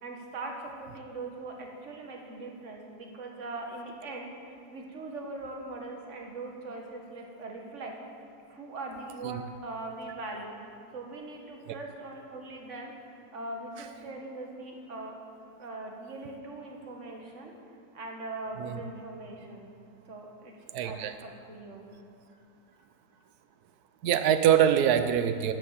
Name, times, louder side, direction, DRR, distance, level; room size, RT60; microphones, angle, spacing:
voice 1, 0.0-8.0 8.5-10.6 10.9-12.9 13.3-15.2 15.6-17.5 17.9-19.7 20.1-21.9 22.7-22.8, right 2 dB, 45° right, 1 dB, 1.9 m, -41 dB
voice 2, 20.7-21.1 24.0-25.5, right 9 dB, 65° right, 9 dB, 1.2 m, -24 dB
13.0 x 8.6 x 8.3 m, 2.5 s
omnidirectional pair, 1.9 m